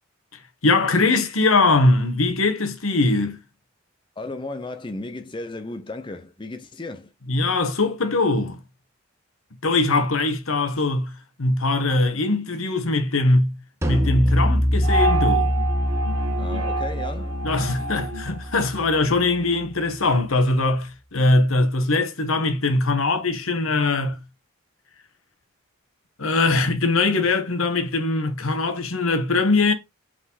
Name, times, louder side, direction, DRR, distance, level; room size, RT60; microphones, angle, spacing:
voice 1, 0.6-3.4 7.3-8.6 9.6-13.6 13.9-15.6 17.4-24.2 26.2-29.7, left 2 dB, 80° left, 1.4 m, -21 dB
voice 2, 4.2-7.1 16.4-17.4, left 2 dB, 25° left, 0.7 m, -34 dB
sound 1, 13.8-19.2, equal, 15° right, 0.9 m, -24 dB
sound 2, 14.8-19.4, right 2 dB, 90° right, 1.9 m, -28 dB
5.6 x 5.0 x 4.1 m
head